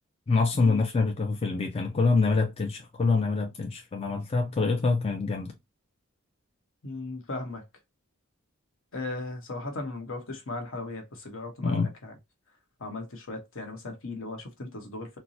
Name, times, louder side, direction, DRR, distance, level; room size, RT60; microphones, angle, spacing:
voice 1, 0.3-5.5 11.6-11.9, left 4 dB, 25° left, 0.4 m, -25 dB
voice 2, 6.8-7.6 8.9-12.1 12.8-15.2, left 2 dB, 65° left, 1.1 m, -37 dB
4.4 x 2.0 x 2.7 m
head